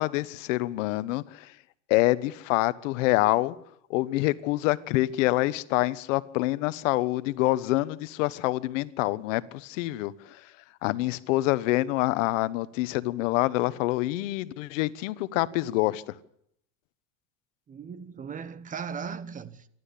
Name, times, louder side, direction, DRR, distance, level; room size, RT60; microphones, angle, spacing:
voice 1, 0.0-1.5 1.9-3.5 3.9-10.4 10.8-16.0, left 18 dB, 65° left, 1.2 m, -26 dB
voice 2, 17.7-19.7, right 6 dB, 20° right, 1.1 m, -37 dB
27.0 x 12.5 x 8.5 m
supercardioid pair, 140°, 41 cm